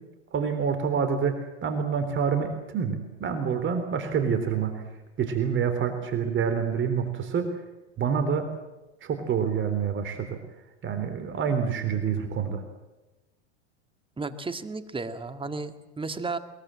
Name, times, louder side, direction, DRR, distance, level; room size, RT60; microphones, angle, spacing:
voice 1, 0.3-4.8 5.2-7.5 8.0-8.5 9.0-10.4 10.8-12.6, right 6 dB, 35° right, 8 dB, 3.6 m, -27 dB
voice 2, 14.2-16.4, right 3 dB, 15° right, 9 dB, 2.0 m, -33 dB
22.5 x 22.0 x 7.6 m, 1.1 s
hypercardioid pair, 95°, 34 cm